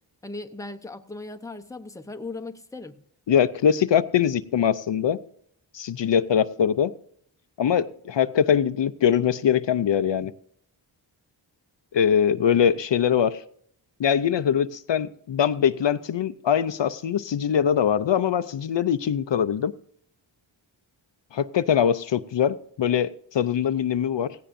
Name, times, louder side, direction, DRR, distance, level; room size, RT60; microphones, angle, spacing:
voice 1, 0.2-3.0, left 2 dB, 5° left, 0.7 m, -37 dB
voice 2, 3.3-5.2 5.7-6.9 7.6-10.3 11.9-13.4 14.0-19.7 21.3-24.4, left 8 dB, 65° left, 0.6 m, -22 dB
17.0 x 16.0 x 2.6 m
wide cardioid pair, 110°, 47 cm